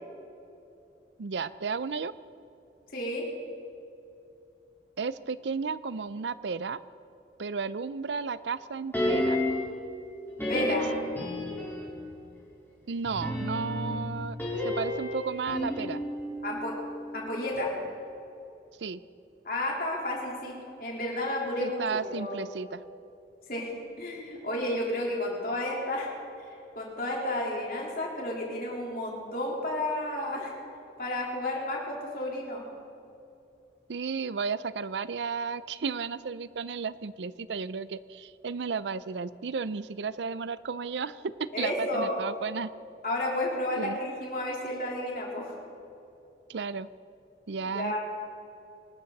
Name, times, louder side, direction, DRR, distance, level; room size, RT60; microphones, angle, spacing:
voice 1, 1.2-2.1 5.0-6.8 7.4-9.4 10.6-10.8 12.9-14.4 14.6-16.0 18.8-19.0 21.6-22.8 33.9-42.7 43.8-44.0 46.5-46.9 47.5-48.0, right 5 dB, 80° right, 16 dB, 0.5 m, -33 dB
voice 2, 2.9-3.2 10.4-10.9 16.4-16.7 17.1-17.7 19.4-20.5 20.8-22.4 23.5-26.1 26.8-30.5 31.0-32.6 41.5-42.2 43.0-45.5 47.7-48.0, left 1 dB, 50° left, -3 dB, 3.9 m, -31 dB
sound 1, 8.9-9.8 10.4-12.0 13.0-17.3 17.5-17.6, left 1 dB, 10° left, 4.1 m, -31 dB
24.5 x 13.5 x 4.1 m, 2.8 s
head